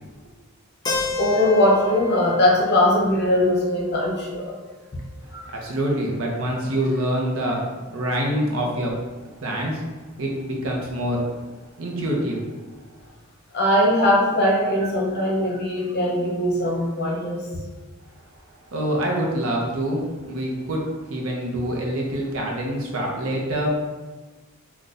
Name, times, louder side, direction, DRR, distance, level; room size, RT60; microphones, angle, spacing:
Keyboard (musical), 0.9-4.7, left 4 dB, 20° left, 0.3 m, -32 dB
voice 1, 1.2-4.6 5.3-5.5 13.5-17.4, left 1 dB, 50° left, -2 dB, 0.7 m, -20 dB
voice 2, 5.2-7.6 7.9-8.9 9.4-9.8 10.2-11.2 11.8-12.4 18.7-20.8 21.1-23.9, equal, 65° right, -1 dB, 0.6 m, -25 dB
3.9 x 2.2 x 2.4 m, 1.2 s
head